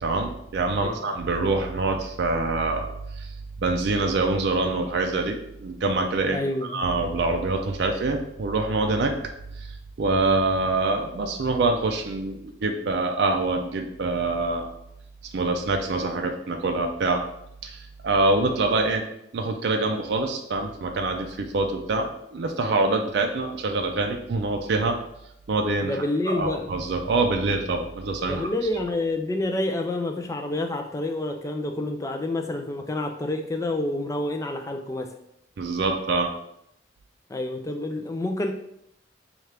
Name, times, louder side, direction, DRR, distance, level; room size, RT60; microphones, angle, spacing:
voice 1, 0.0-2.9 3.1-3.3 3.6-6.4 6.7-9.1 9.6-9.7 10.0-14.7 15.3-17.2 17.6-19.0 19.3-25.0 25.5-25.9 26.3-28.5 35.6-36.3, right 3 dB, 60° right, 3 dB, 0.4 m, -25 dB
voice 2, 6.3-6.9 25.8-26.7 28.3-35.1 37.3-38.5, left 2 dB, 15° left, 5 dB, 0.3 m, -28 dB
4.2 x 2.4 x 3.3 m, 0.77 s
head